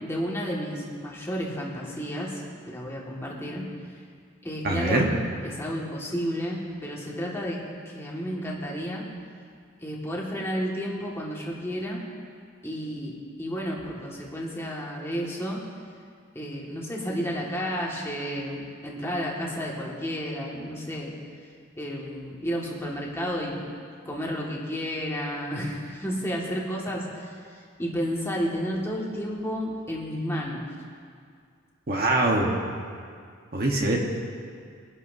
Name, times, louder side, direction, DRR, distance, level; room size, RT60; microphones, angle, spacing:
voice 1, 0.0-3.7 4.4-5.0 5.4-9.1 9.8-12.0 12.6-15.7 16.4-21.1 21.8-23.7 24.1-30.7, equal, 10° left, -4 dB, 1.9 m, -32 dB
voice 2, 4.6-5.1 31.9-32.6 33.5-34.0, right 2 dB, 45° right, 0 dB, 1.3 m, -23 dB
22.5 x 11.0 x 2.8 m, 2.2 s
head